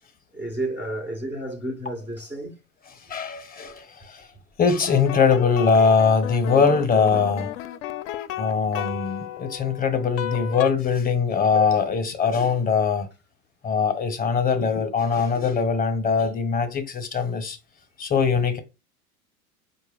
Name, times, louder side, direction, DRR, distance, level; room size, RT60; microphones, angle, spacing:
voice 1, 0.3-2.6, right 1 dB, 5° right, 0.4 m, -31 dB
voice 2, 3.1-4.3 4.6-7.5 8.4-13.1 13.6-17.6 18.0-18.6, left 5 dB, 20° left, 0.7 m, -22 dB
sound 1, 4.9-10.7, left 12 dB, 60° left, 0.5 m, -33 dB
4.4 x 2.2 x 3.5 m
hypercardioid pair, 95°, 44 cm